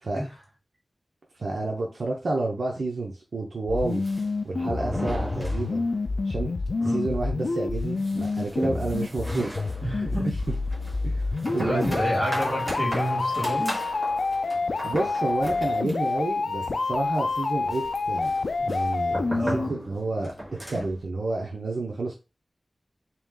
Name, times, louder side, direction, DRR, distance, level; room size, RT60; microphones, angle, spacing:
voice 1, 1.4-4.0 4.4-5.9 6.2-6.5 6.8-9.5 9.8-10.3 11.0-12.0 14.8-20.3 20.7-22.1, right 2 dB, 90° right, 0.7 m, -30 dB
sound 1, 3.7-19.7, left 3 dB, 85° left, 0.3 m, -28 dB
sound 2, 3.8-6.2 6.4-6.5 6.8-6.9 7.4-21.0, equal, 15° right, 1.5 m, -37 dB
voice 2, 6.8-7.1 9.8-10.3 11.6-13.8 19.4-19.8, right 1 dB, 40° right, 2.2 m, -29 dB
3.4 x 3.0 x 3.7 m
wide cardioid pair, 80°, 0 cm